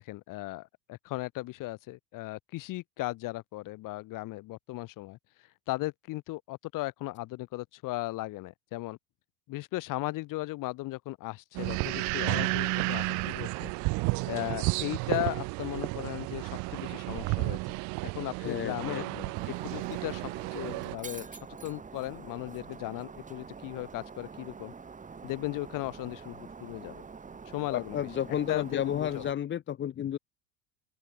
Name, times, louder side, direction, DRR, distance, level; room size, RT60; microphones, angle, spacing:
voice 1, 0.0-5.2 5.7-9.0 9.5-13.7 14.3-17.7 18.1-19.0 19.6-24.7 25.2-27.0 27.5-28.0 28.5-29.2, left 19 dB, 50° left, 3.1 m, -37 dB
sound 1, 11.5-21.0, right 29 dB, 45° right, 0.6 m, -32 dB
voice 2, 18.4-19.3 27.7-30.2, left 10 dB, 25° left, 1.1 m, -32 dB
Shatter, 19.4-29.3, right 5 dB, 20° right, 2.7 m, -46 dB
open air
hypercardioid pair, 85°, 42 cm